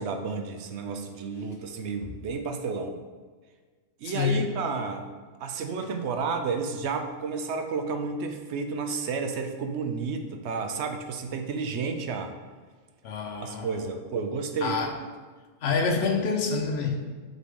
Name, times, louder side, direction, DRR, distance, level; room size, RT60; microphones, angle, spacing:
voice 1, 0.0-3.0 4.0-5.1 5.4-12.4 13.4-15.1, right 4 dB, 65° right, 6 dB, 0.9 m, -31 dB
voice 2, 4.0-4.5 13.0-13.8 14.6-14.9 15.6-17.1, left 5 dB, 55° left, 3 dB, 1.0 m, -27 dB
7.0 x 4.2 x 3.7 m, 1.4 s
omnidirectional pair, 1.3 m